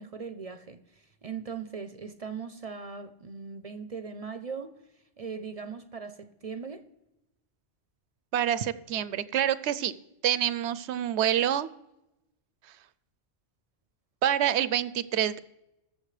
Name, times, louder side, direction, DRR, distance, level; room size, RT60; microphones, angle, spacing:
voice 1, 0.0-4.7 5.2-6.8, right 5 dB, 45° right, 0.5 m, -39 dB
voice 2, 8.3-9.9 10.2-11.7 14.2-15.4, right 10 dB, 75° right, 0.8 m, -27 dB
20.5 x 7.1 x 3.2 m
omnidirectional pair, 1.2 m